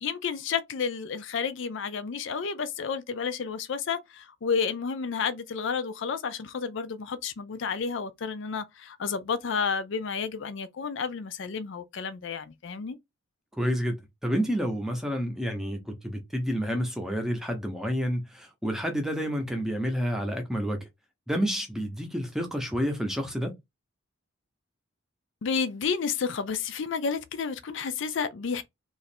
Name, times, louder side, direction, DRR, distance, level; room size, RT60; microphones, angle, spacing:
voice 1, 0.0-13.0 25.4-28.6, left 6 dB, 60° left, 0.4 m, -31 dB
voice 2, 13.6-20.9 21.3-23.5, equal, ahead, 0.7 m, -29 dB
3.1 x 2.5 x 4.2 m
head